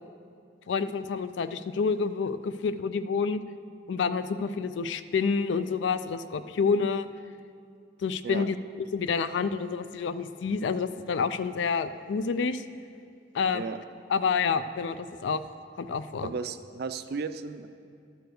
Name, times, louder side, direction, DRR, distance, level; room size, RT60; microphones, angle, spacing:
voice 1, 0.7-3.4 3.9-7.1 8.0-8.6 8.9-12.6 13.3-13.7 14.1-15.4 15.8-16.3, left 5 dB, 70° left, 12 dB, 0.4 m, -28 dB
voice 2, 16.2-17.7, right 5 dB, 60° right, 11 dB, 0.4 m, -34 dB
12.5 x 4.6 x 6.4 m, 2.4 s
head